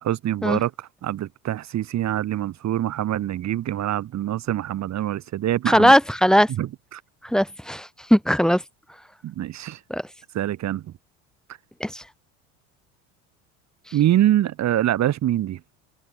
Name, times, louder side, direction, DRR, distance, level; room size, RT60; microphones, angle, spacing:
voice 1, 0.0-5.9 6.6-7.0 9.2-9.8 10.3-10.8 13.9-15.6, right 12 dB, 45° right, 2.6 m, -24 dB
voice 2, 5.7-6.5 7.2-8.6 9.9-10.0 11.8-12.0, equal, ahead, 3.6 m, -19 dB
supercardioid pair, 95°, 38 cm